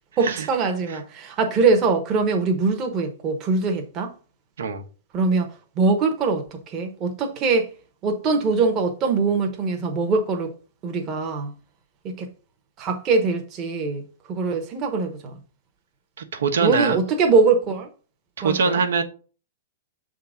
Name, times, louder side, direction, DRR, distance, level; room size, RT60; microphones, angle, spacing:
voice 1, 0.2-4.1 5.1-5.5 5.8-7.7 8.0-10.5 10.8-11.5 12.0-12.3 12.8-14.0 14.3-15.3 16.6-17.9 18.4-18.8, right 4 dB, 20° right, 0.9 m, -22 dB
voice 2, 16.3-17.0 18.4-19.0, right 5 dB, 80° right, 1.1 m, -22 dB
6.9 x 3.8 x 4.8 m
hypercardioid pair, 175°, 0 cm